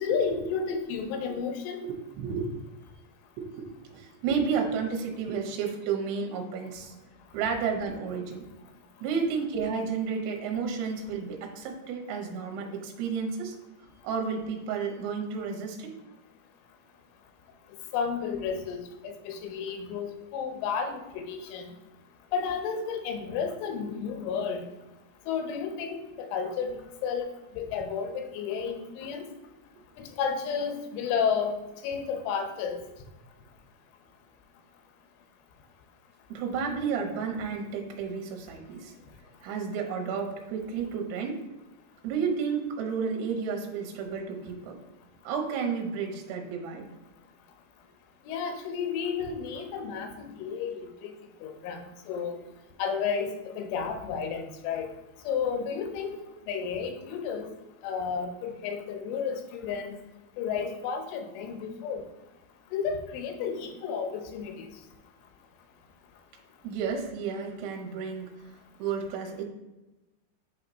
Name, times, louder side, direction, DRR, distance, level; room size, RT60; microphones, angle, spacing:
voice 1, 0.0-1.8 17.9-21.7 22.3-24.7 25.3-27.3 27.6-29.2 30.2-31.5 31.8-32.8 48.3-51.1 51.4-51.8 52.1-52.4 52.8-53.3 53.6-54.9 55.2-56.2 56.5-57.5 57.8-60.0 60.4-62.0 62.7-64.6, left 6 dB, 85° left, 5 dB, 3.2 m, -32 dB
voice 2, 1.8-2.5 3.4-6.9 7.3-8.4 9.0-13.5 14.0-15.9 36.3-38.9 39.4-41.3 42.0-44.8 45.2-46.9 66.6-68.3 68.8-69.5, right 6 dB, 75° right, 2 dB, 2.8 m, -32 dB
8.4 x 2.9 x 3.9 m, 1.0 s
omnidirectional pair, 5.4 m